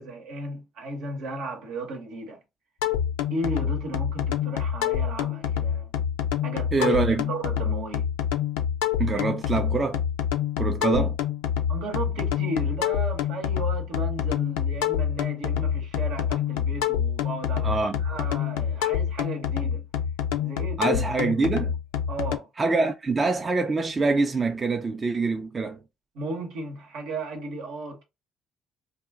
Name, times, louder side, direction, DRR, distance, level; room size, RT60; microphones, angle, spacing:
voice 1, 0.0-2.4 3.3-5.9 6.4-7.0 7.3-8.1 11.7-19.9 20.4-21.0 21.3-21.4 22.1-22.5 26.1-28.0, right 2 dB, 70° right, 0.9 m, -35 dB
sound 1, 2.8-22.4, left 9 dB, 80° left, 0.4 m, -27 dB
voice 2, 6.7-7.2 9.0-10.0 10.6-11.2 17.6-18.0 20.8-21.7 22.6-25.8, right 3 dB, 35° right, 0.4 m, -25 dB
2.4 x 2.0 x 3.5 m
hypercardioid pair, 55°, 0 cm